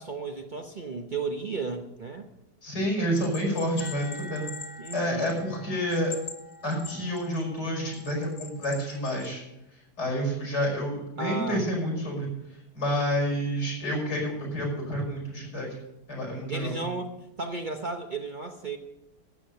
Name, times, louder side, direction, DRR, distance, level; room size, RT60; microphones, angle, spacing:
voice 1, 0.0-2.3 4.8-5.3 11.2-11.7 16.5-17.1 17.4-18.8, right 3 dB, 35° right, 4 dB, 0.8 m, -34 dB
voice 2, 2.6-4.5 4.9-6.1 6.6-9.4 9.7-15.7 16.1-16.8, equal, 90° left, -1 dB, 6.2 m, -29 dB
Bell, 3.1-5.6 5.9-7.4 7.9-9.3, left 4 dB, 50° left, 1.9 m, -42 dB
sound 1, 3.8-9.4, left 1 dB, 55° right, 4.5 m, -48 dB
12.5 x 8.9 x 6.4 m, 0.87 s
omnidirectional pair, 1.8 m